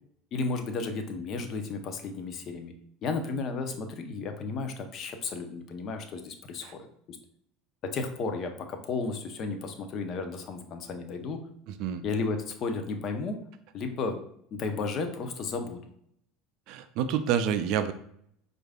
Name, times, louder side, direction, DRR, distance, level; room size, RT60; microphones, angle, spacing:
voice 1, 0.3-2.7 3.0-7.2 7.8-11.4 12.0-13.4 13.7-14.2 14.5-15.9, left 4 dB, 45° left, 6 dB, 0.6 m, -33 dB
voice 2, 11.7-12.0 16.7-17.9, right 8 dB, 60° right, 11 dB, 0.3 m, -28 dB
4.6 x 2.5 x 2.3 m, 0.67 s
hypercardioid pair, 75°, 0 cm